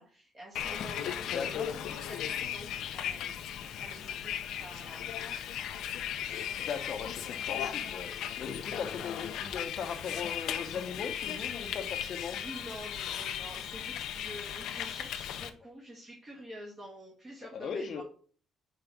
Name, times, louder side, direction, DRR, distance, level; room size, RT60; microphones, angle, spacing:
voice 1, 0.0-5.7 12.4-18.0, right 1 dB, 25° right, -3 dB, 1.6 m, -48 dB
Bus, 0.5-15.5, left 9 dB, 75° left, 0.7 m, -37 dB
voice 2, 1.3-1.7 6.6-12.4 17.5-18.0, left 6 dB, 50° left, 6 dB, 0.9 m, -38 dB
5.3 x 4.7 x 6.0 m, 0.43 s
cardioid pair, 165°, 0 cm